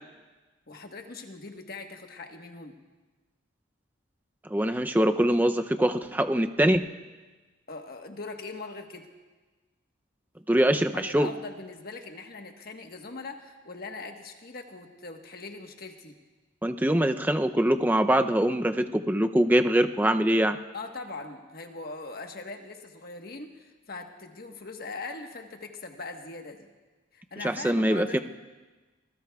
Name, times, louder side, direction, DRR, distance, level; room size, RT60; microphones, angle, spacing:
voice 1, 0.7-2.8 7.7-9.1 10.9-16.2 20.7-26.7 27.1-28.2, left 3 dB, 45° left, 4 dB, 1.2 m, -41 dB
voice 2, 4.5-6.8 10.5-11.3 16.6-20.6 27.4-28.2, right 1 dB, 10° right, 7 dB, 0.5 m, -23 dB
25.5 x 19.5 x 2.3 m, 1.3 s
head